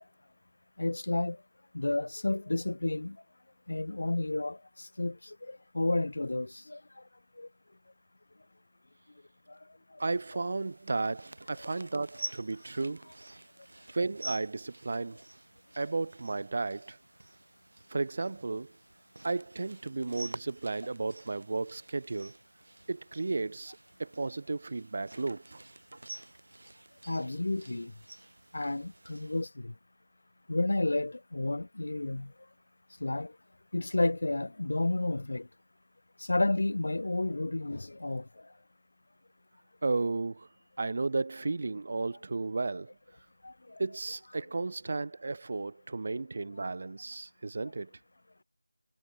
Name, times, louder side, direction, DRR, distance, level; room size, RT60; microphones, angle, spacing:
voice 1, 0.8-1.4 1.7-3.2 3.7-6.8 7.4-7.5 9.5-9.6 27.1-27.9 28.5-29.7 30.5-32.3 33.0-33.3 33.7-35.5 36.2-38.3 43.4-43.8, left 2 dB, 50° left, 0.3 m, -31 dB
voice 2, 10.0-13.1 13.9-15.2 15.8-17.0 17.9-18.7 19.2-22.4 22.9-25.6 39.8-40.5 40.8-42.9 43.8-47.9, right 3 dB, 35° right, 0.7 m, -33 dB
sound 1, 10.0-29.4, right 2 dB, 60° right, 6.2 m, -49 dB
figure-of-eight pair, 175°, 0 cm